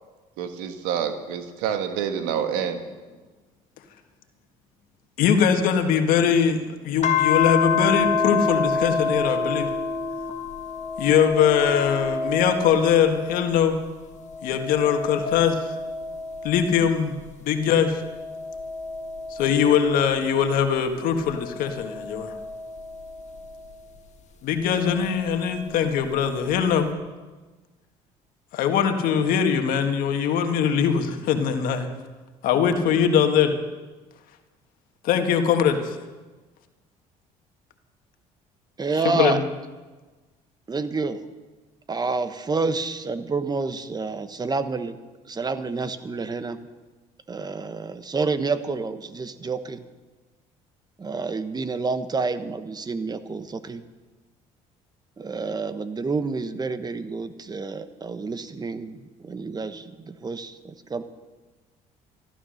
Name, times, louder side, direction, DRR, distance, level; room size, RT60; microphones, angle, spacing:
voice 1, 0.4-2.8, right 8 dB, 90° right, 7 dB, 1.5 m, -27 dB
voice 2, 5.2-9.7 11.0-13.8 14.4-15.7 16.4-17.1 17.4-18.0 19.3-22.3 24.4-26.9 28.5-31.9 32.4-33.5 35.0-36.0 39.0-39.4, left 7 dB, 75° left, 6 dB, 1.7 m, -21 dB
sound 1, 7.0-13.7 14.2-17.1 17.7-20.5 21.2-23.7 25.0-26.1, left 5 dB, 50° left, 1.7 m, -29 dB
voice 3, 38.8-39.4 40.7-41.2 41.9-44.9 45.3-46.6 47.3-49.8 51.0-53.8 55.2-61.0, right 4 dB, 25° right, 11 dB, 1.2 m, -28 dB
14.0 x 12.0 x 6.5 m, 1.3 s
supercardioid pair, 80°, 15 cm